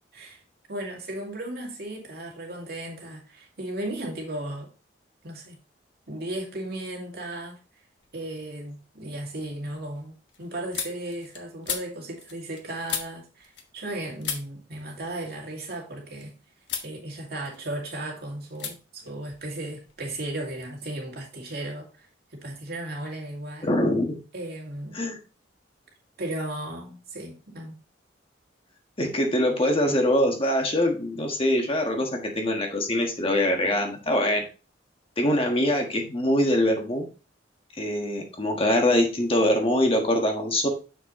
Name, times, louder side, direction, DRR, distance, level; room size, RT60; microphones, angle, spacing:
voice 1, 0.7-4.7 5.2-5.6 6.1-7.6 8.1-16.4 16.8-23.7 24.3-25.0 26.2-27.8, right 1 dB, 60° right, 2.4 m, -35 dB
sound 1, 8.0-8.5 8.9-13.9 14.2-16.2 16.6-16.9 17.3-18.0 18.5-18.7 19.0-20.1, left 7 dB, 70° left, 1.3 m, -37 dB
voice 2, 23.6-24.1 24.9-25.2 29.0-34.4 35.2-37.1 37.8-40.7, left 1 dB, 30° left, 1.5 m, -23 dB
7.2 x 6.3 x 3.1 m
head